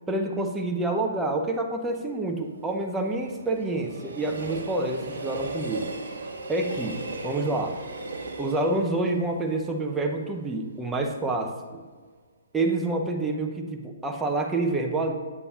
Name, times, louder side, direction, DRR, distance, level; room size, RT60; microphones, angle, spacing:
voice 1, 0.1-5.9 6.5-7.8 8.4-11.8 12.5-15.1, right 2 dB, 10° right, 2 dB, 0.6 m, -28 dB
Train, 1.8-10.9 11.3-11.4, right 2 dB, 65° right, 0.8 m, -38 dB
8.4 x 6.7 x 2.4 m, 1.5 s
figure-of-eight pair, 135°, 0 cm